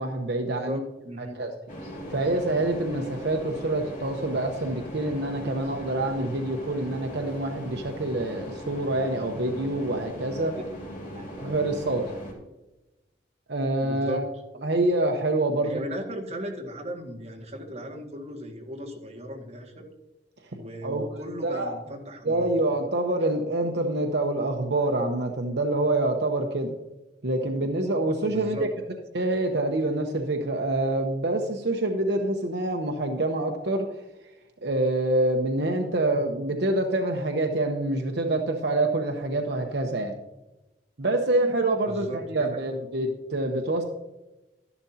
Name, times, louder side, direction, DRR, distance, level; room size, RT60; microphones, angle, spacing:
voice 1, 0.0-0.8 1.2-1.5 2.1-10.5 11.4-12.0 13.5-14.3 14.6-15.8 20.8-21.1 21.4-21.7 22.2-26.7 27.2-28.7 29.1-34.0 34.6-40.1 41.0-43.8, right 2 dB, 65° right, 3 dB, 0.9 m, -26 dB
voice 2, 0.6-1.4 10.6-10.7 11.0-11.5 13.8-14.2 15.6-19.9 20.5-22.5 28.2-28.7 41.8-42.6, equal, 40° right, -1 dB, 1.9 m, -37 dB
sound 1, 1.7-12.3, equal, 45° left, 3.5 m, -39 dB
12.5 x 11.0 x 2.8 m, 1.0 s
head